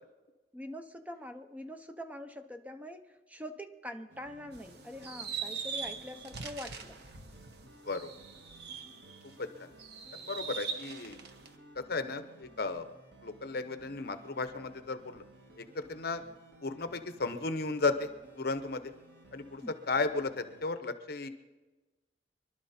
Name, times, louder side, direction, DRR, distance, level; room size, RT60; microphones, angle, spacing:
voice 1, 0.5-7.0 19.6-19.7, left 1 dB, 10° right, 7 dB, 0.6 m, -44 dB
sound 1, 4.1-20.6, right 2 dB, 85° right, 1.9 m, -57 dB
sound 2, 4.5-9.3 9.8-11.5, right 6 dB, 65° right, 1.1 m, -41 dB
voice 2, 9.4-9.7 10.1-11.2 11.7-12.8 13.2-15.2 15.6-16.2 16.6-18.1 18.4-18.9 19.3-21.3, left 3 dB, 60° left, 10 dB, 0.9 m, -34 dB
25.5 x 11.5 x 4.3 m, 1.2 s
head